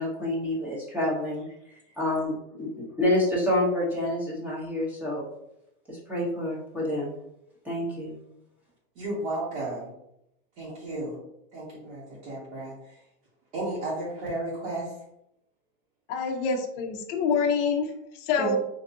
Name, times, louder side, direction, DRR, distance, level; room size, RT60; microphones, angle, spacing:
voice 1, 0.0-1.5 2.0-5.3 5.9-7.1 7.6-8.2, left 1 dB, 5° right, -6 dB, 0.8 m, -28 dB
voice 2, 9.0-9.9 10.6-11.2 11.5-13.0 13.5-14.9 18.4-18.6, right 1 dB, 75° right, -6 dB, 1.3 m, -33 dB
voice 3, 16.1-18.6, left 5 dB, 35° left, 2 dB, 0.5 m, -26 dB
3.9 x 2.6 x 2.6 m, 0.82 s
supercardioid pair, 150°, 34 cm